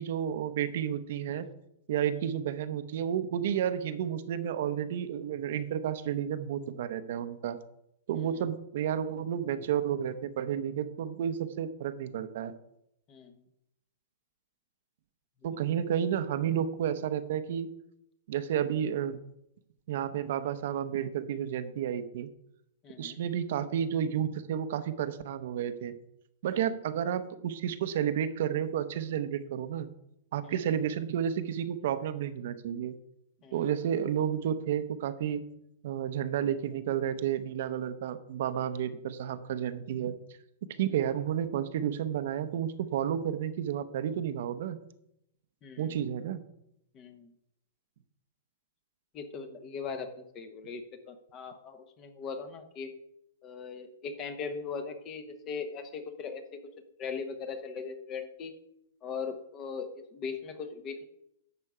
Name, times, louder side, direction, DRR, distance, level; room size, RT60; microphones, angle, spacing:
voice 1, 0.0-1.5 1.9-7.6 8.1-12.5 15.4-17.7 18.3-19.2 19.9-22.3 23.0-26.0 26.4-29.9 30.3-32.9 33.5-35.4 35.8-40.2 40.8-44.8 45.8-46.4, right 9 dB, 55° right, 11 dB, 0.7 m, -31 dB
voice 2, 22.8-23.2 26.5-26.7 30.4-30.6 33.4-33.7 45.6-46.1 46.9-47.3 49.1-52.9 53.4-56.4 57.0-58.5 59.0-61.0, left 5 dB, 20° left, 9 dB, 0.9 m, -39 dB
11.0 x 6.8 x 4.9 m, 0.78 s
supercardioid pair, 170°, 0 cm